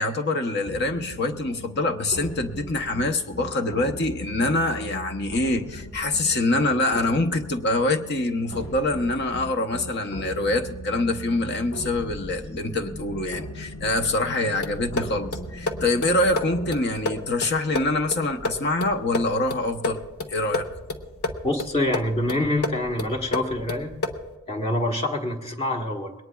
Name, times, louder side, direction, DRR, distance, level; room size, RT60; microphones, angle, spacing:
voice 1, 0.0-20.0 20.3-20.7, left 2 dB, 50° left, 6 dB, 0.9 m, -25 dB
sound 1, 0.6-16.8, equal, 65° left, 1.2 m, -38 dB
sound 2, 14.6-24.4, left 2 dB, 80° left, 1.0 m, -32 dB
voice 2, 21.4-23.9 24.5-26.1, left 1 dB, 25° left, 3 dB, 1.4 m, -26 dB
21.5 x 18.5 x 2.4 m, 1.1 s
head